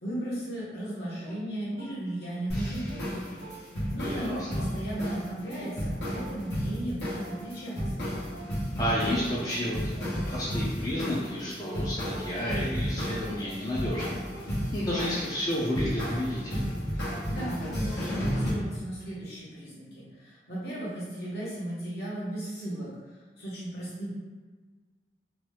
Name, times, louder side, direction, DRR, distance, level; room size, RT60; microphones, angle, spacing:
voice 1, 0.0-3.2 3.9-8.0 16.9-22.9 23.4-24.1, right 1 dB, 65° left, -8 dB, 1.1 m, -36 dB
sound 1, 1.2-4.1 4.5-12.9 13.2-18.7, right 2 dB, 55° right, 0.5 m, -50 dB
sound 2, 2.5-18.5, equal, 85° left, 1.2 m, -33 dB
voice 2, 4.0-4.5 8.8-14.1 14.4-16.6, left 1 dB, 20° left, -7 dB, 0.4 m, -31 dB
3.0 x 2.3 x 3.2 m, 1.4 s
head